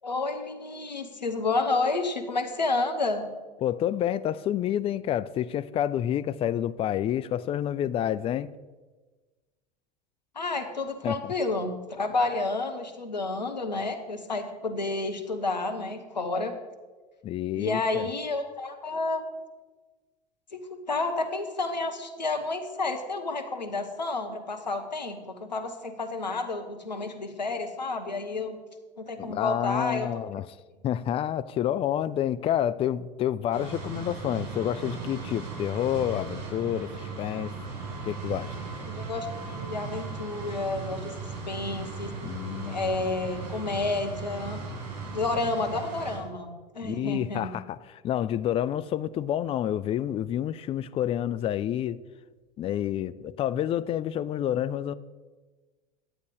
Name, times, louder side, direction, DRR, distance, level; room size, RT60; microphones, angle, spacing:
voice 1, 0.0-3.3 10.3-16.5 17.5-19.2 20.5-28.6 29.0-30.1 38.9-41.1 41.5-42.1 42.6-44.6 45.1-47.5, left 3 dB, 85° left, 1.0 m, -30 dB
voice 2, 3.6-8.5 11.0-11.3 17.2-18.1 29.2-30.6 30.8-36.9 37.2-37.5 38.0-38.5 42.2-42.9 46.8-52.0 52.6-54.9, left 11 dB, 25° left, 0.4 m, -29 dB
sound 1, 33.5-46.2, right 4 dB, 55° right, 3.6 m, -37 dB
10.5 x 8.2 x 4.8 m
figure-of-eight pair, 75°, 21 cm